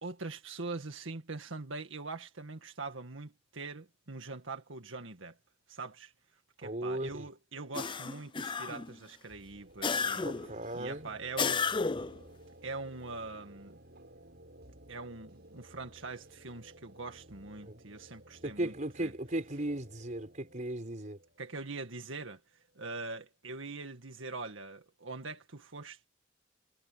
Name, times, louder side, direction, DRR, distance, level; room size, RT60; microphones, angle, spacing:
voice 1, 0.0-5.4 5.7-6.1 6.6-10.3 10.7-11.6 12.6-13.8 14.9-18.7 19.0-19.1 21.4-22.4 22.8-26.1, right 3 dB, 85° right, 1.9 m, -43 dB
voice 2, 6.6-7.3 10.2-11.1 17.6-17.8 18.4-21.2, right 1 dB, 40° right, 4.5 m, -36 dB
sound 1, 7.7-9.0 9.8-10.6 11.4-12.2, left 5 dB, 25° left, 0.6 m, -32 dB
sound 2, 9.3-23.0, right 1 dB, 55° right, 7.8 m, -56 dB
head